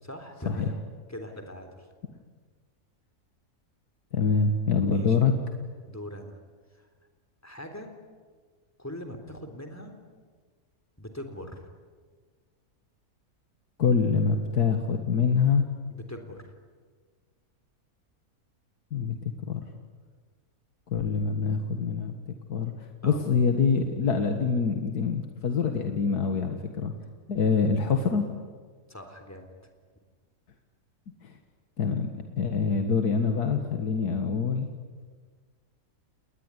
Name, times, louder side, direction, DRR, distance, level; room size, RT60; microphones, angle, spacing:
voice 1, 0.0-0.8 1.1-1.9 4.9-5.2 5.9-6.4 6.7-6.9 7.4-7.9 8.8-10.0 11.0-11.6 15.9-16.5 23.0-23.3 28.9-29.5, equal, 10° left, 4 dB, 3.6 m, -41 dB
voice 2, 4.1-5.3 13.8-15.6 18.9-19.2 19.4-19.6 20.9-22.1 22.5-26.9 27.3-28.2 31.2-31.3 31.8-32.1 32.4-34.7, left 5 dB, 85° left, 5 dB, 2.2 m, -25 dB
29.5 x 20.5 x 9.8 m, 1.5 s
omnidirectional pair, 1.6 m